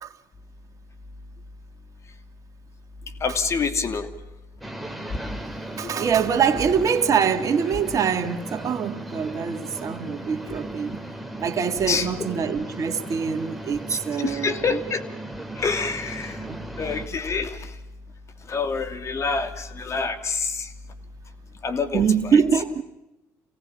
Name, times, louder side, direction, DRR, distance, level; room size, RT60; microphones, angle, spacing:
voice 1, 3.2-4.1 5.1-5.4 5.8-6.1 11.9-12.3 13.9-15.0 15.6-16.4 16.8-17.8 18.5-20.7 21.6-22.0, left 4 dB, 40° left, 2.7 m, -27 dB
sound 1, 4.6-17.1, right 1 dB, ahead, 3.0 m, -36 dB
voice 2, 5.8-11.1 11.4-14.8 16.5-16.7 21.9-22.8, right 7 dB, 45° right, 2.0 m, -24 dB
27.0 x 18.0 x 7.3 m
supercardioid pair, 75°, 8 cm